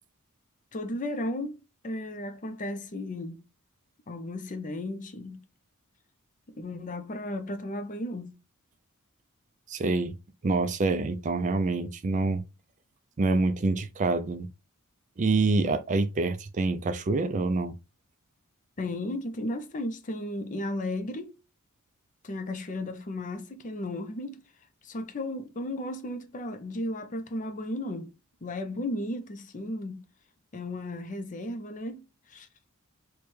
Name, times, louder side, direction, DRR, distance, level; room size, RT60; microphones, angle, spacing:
voice 1, 0.7-1.6 1.8-3.4 4.1-5.4 6.5-8.3 18.8-21.3 22.2-24.4 24.8-28.1 28.4-30.0 30.5-32.0 32.3-32.5, left 1 dB, 35° left, 0.5 m, -34 dB
voice 2, 9.7-10.2 10.4-12.4 13.2-14.5 15.2-17.7, right 3 dB, 35° right, 0.4 m, -26 dB
3.2 x 2.2 x 4.3 m
head